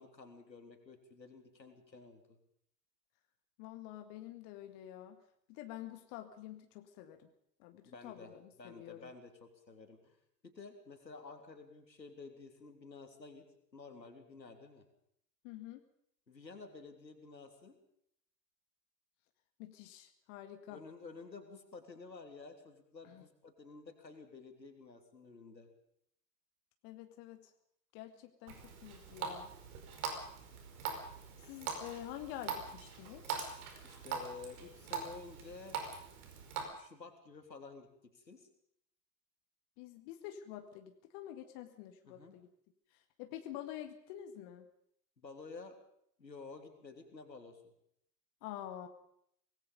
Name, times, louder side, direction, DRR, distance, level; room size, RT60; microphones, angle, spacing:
voice 1, 0.0-2.4 7.8-8.3 8.6-10.2 10.4-13.5 13.7-14.8 16.3-17.8 20.7-25.7 33.8-35.8 36.7-38.5 42.0-42.3 45.2-45.8 46.2-47.6, left 4 dB, 85° left, 5 dB, 3.4 m, -52 dB
voice 2, 3.6-5.2 5.5-7.3 7.6-9.1 15.4-15.8 19.6-20.8 23.0-23.2 26.8-27.5 27.9-29.5 31.4-33.4 39.8-42.5 43.2-44.7 48.4-48.9, left 12 dB, 45° left, 6 dB, 2.1 m, -48 dB
Water tap faucet, 28.5-36.6, right 6 dB, 60° right, 5.2 m, -43 dB
25.0 x 19.5 x 5.3 m, 0.71 s
figure-of-eight pair, 90°, 49 cm